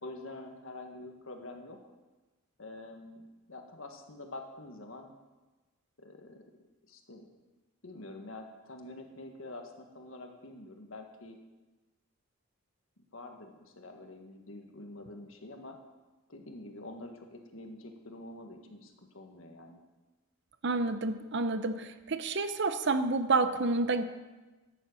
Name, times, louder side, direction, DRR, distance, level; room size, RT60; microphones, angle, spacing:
voice 1, 0.0-1.8 2.6-5.1 6.0-6.4 6.9-7.3 7.8-11.4 13.0-15.8 16.3-19.8, left 2 dB, 65° left, 4 dB, 1.6 m, -46 dB
voice 2, 20.6-24.0, right 3 dB, 55° right, 11 dB, 0.7 m, -29 dB
11.0 x 7.4 x 8.4 m, 1.2 s
head